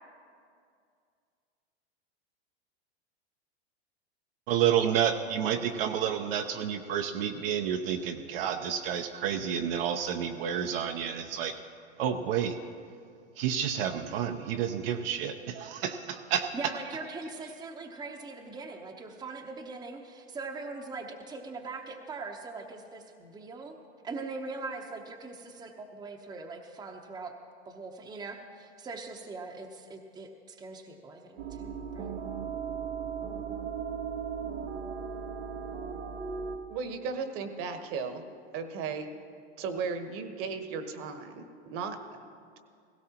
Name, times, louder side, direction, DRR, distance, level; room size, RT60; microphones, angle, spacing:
voice 1, 4.5-11.6 12.0-12.6 13.4-16.5, right 9 dB, 60° right, 5 dB, 0.7 m, -30 dB
voice 2, 16.5-23.8 24.0-27.3 27.7-32.2, right 3 dB, 10° right, 3 dB, 0.8 m, -41 dB
sound 1, 31.4-36.6, right 6 dB, 85° right, 1.2 m, -37 dB
voice 3, 36.7-38.2 38.5-39.1 39.6-42.0, right 5 dB, 40° right, 8 dB, 1.2 m, -35 dB
17.0 x 16.5 x 2.9 m, 2.3 s
hypercardioid pair, 115°, 33 cm